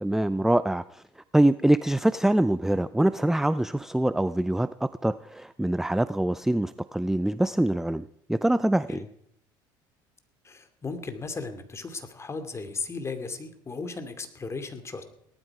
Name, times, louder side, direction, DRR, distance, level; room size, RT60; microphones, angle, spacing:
voice 1, 0.0-1.0 1.3-9.0, right 1 dB, 5° right, 15 dB, 0.5 m, -24 dB
voice 2, 10.4-15.0, left 4 dB, 25° left, 7 dB, 2.7 m, -36 dB
18.0 x 12.5 x 4.9 m, 0.74 s
supercardioid pair, 80°, 11 cm